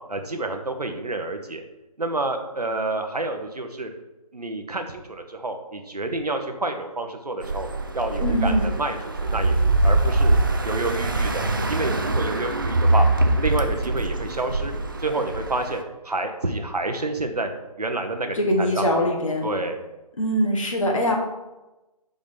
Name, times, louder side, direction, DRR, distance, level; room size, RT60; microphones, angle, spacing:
voice 1, 0.1-1.6 2.0-3.9 4.3-7.7 7.9-10.4 10.6-13.1 13.4-14.7 15.0-17.5 17.8-19.1 19.4-19.8, right 2 dB, 80° right, 5 dB, 0.8 m, -29 dB
sound 1, 7.4-15.8, right 2 dB, 35° right, 0.4 m, -23 dB
voice 2, 8.2-8.7 18.3-19.5 20.2-21.1, equal, 55° left, 0 dB, 1.5 m, -22 dB
5.3 x 3.8 x 5.3 m, 1.0 s
figure-of-eight pair, 150°, 20 cm